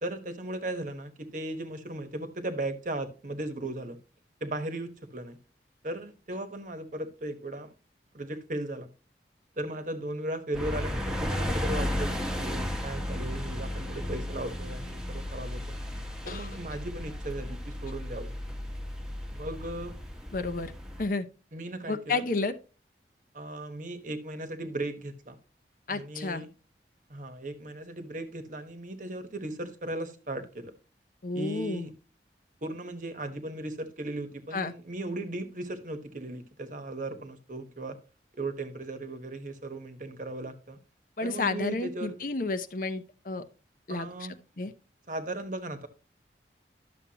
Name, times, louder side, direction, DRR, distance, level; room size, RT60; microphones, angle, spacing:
voice 1, 0.0-4.0 4.4-5.4 5.8-7.7 8.1-8.9 9.6-15.8 16.3-18.3 19.3-19.9 21.5-22.2 23.3-25.4 25.9-26.5 27.1-30.7 31.3-31.9 32.6-38.0 38.4-40.8 41.2-42.3 43.9-44.4 45.1-45.9, right 1 dB, 45° right, 9 dB, 1.1 m, -37 dB
sound 1, 10.5-21.0, left 1 dB, 5° right, 1.1 m, -34 dB
voice 2, 20.3-20.7 21.0-21.3 21.9-22.5 25.9-26.4 31.2-31.9 34.5-34.7 41.2-43.4 43.9-44.1 44.6-44.7, left 3 dB, 50° left, 10 dB, 0.7 m, -31 dB
11.5 x 6.9 x 2.8 m, 0.32 s
head